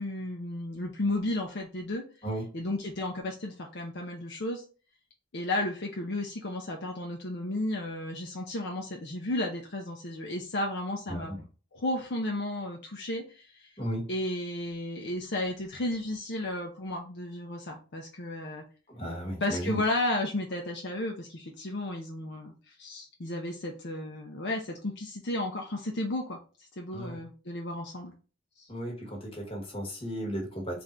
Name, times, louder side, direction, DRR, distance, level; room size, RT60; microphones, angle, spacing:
voice 1, 0.0-2.0 2.5-4.6 5.3-11.3 11.7-13.7 14.1-18.6 19.4-26.4 26.8-28.1 28.6-28.7, left 1 dB, 60° left, 1 dB, 0.7 m, -33 dB
voice 2, 13.8-14.1 18.9-19.8 26.9-27.2 28.7-30.8, equal, 30° left, -1 dB, 1.3 m, -35 dB
3.7 x 2.5 x 4.3 m, 0.35 s
head